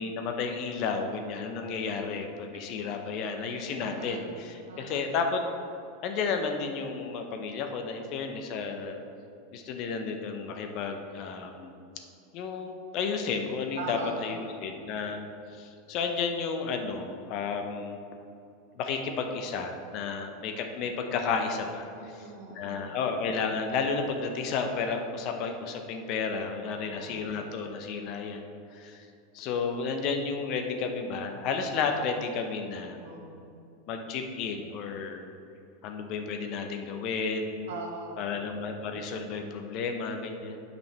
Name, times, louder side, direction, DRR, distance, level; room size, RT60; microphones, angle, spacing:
voice 1, 0.0-5.4 6.0-9.0 9.5-11.7 12.3-15.2 15.5-18.0 18.8-22.1 22.5-28.5 28.7-29.0 29.3-33.0 33.9-35.2 35.8-37.7 38.2-40.6, left 5 dB, 50° left, 5 dB, 0.8 m, -32 dB
voice 2, 3.7-5.1 13.8-14.4 21.9-22.9 26.6-27.4 32.9-33.6 37.7-38.4, right 4 dB, 70° right, -1 dB, 1.4 m, -42 dB
9.0 x 5.3 x 3.4 m, 2.5 s
hypercardioid pair, 90°, 0 cm